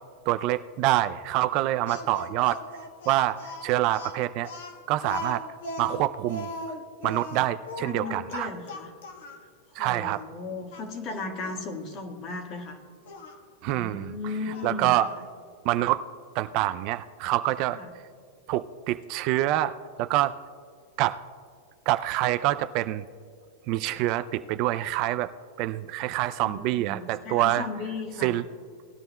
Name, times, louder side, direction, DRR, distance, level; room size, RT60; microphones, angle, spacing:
voice 1, 0.3-2.6 3.1-4.5 4.9-5.4 5.8-6.5 7.0-8.5 9.8-10.2 13.6-14.1 14.6-15.1 15.6-16.0 16.3-17.8 18.5-20.4 21.0-21.2 21.9-23.0 23.7-25.3 25.6-27.7 28.2-28.4, right 15 dB, 45° right, 12 dB, 0.3 m, -26 dB
Speech, 1.9-9.4 10.1-10.2 10.7-11.6 13.1-13.4 14.5-15.3, left 2 dB, 80° left, 1.3 m, -38 dB
voice 2, 7.8-8.9 9.8-12.8 13.7-14.9 17.7-17.9 26.4-28.4, left 3 dB, 35° left, 3 dB, 1.7 m, -36 dB
18.5 x 10.5 x 2.2 m, 2.1 s
supercardioid pair, 140°, 0 cm